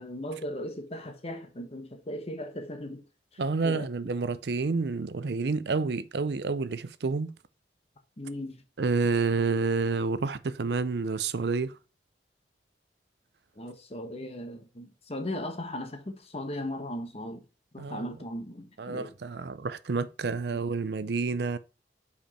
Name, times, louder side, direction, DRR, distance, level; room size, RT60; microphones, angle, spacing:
voice 1, 0.0-3.0 3.3-3.9 8.2-8.6 13.6-17.4 17.7-19.1, left 1 dB, 35° left, 1.2 m, -37 dB
voice 2, 3.4-7.3 8.8-11.7 17.8-18.1 18.8-21.6, right 4 dB, 70° right, 0.5 m, -29 dB
5.1 x 5.0 x 4.2 m
head